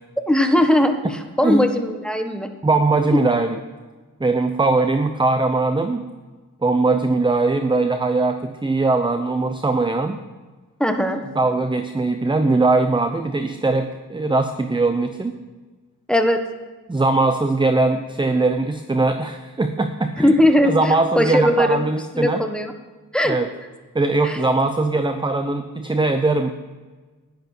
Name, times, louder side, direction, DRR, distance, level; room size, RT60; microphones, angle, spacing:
voice 1, 0.3-2.5 3.1-3.2 10.8-11.2 16.1-16.4 20.2-21.9 22.1-22.7 23.1-23.3 24.2-24.4, left 1 dB, 5° left, 5 dB, 1.4 m, -19 dB
voice 2, 2.6-3.6 4.2-6.0 6.6-10.2 11.3-15.3 16.9-20.4 20.6-22.5 23.2-23.5 23.9-26.5, right 3 dB, 15° right, 8 dB, 0.7 m, -20 dB
11.0 x 10.5 x 6.0 m, 1.3 s
wide cardioid pair, 80°, 34 cm